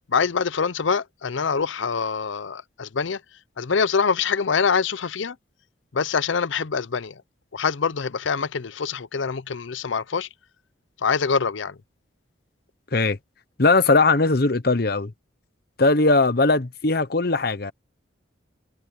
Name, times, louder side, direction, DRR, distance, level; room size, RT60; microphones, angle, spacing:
voice 1, 0.1-3.2 3.6-5.4 5.9-7.2 7.5-10.3 11.0-11.8, left 5 dB, 75° left, 0.6 m, -24 dB
voice 2, 13.6-15.1 15.8-17.7, left 3 dB, 50° left, 1.0 m, -19 dB
head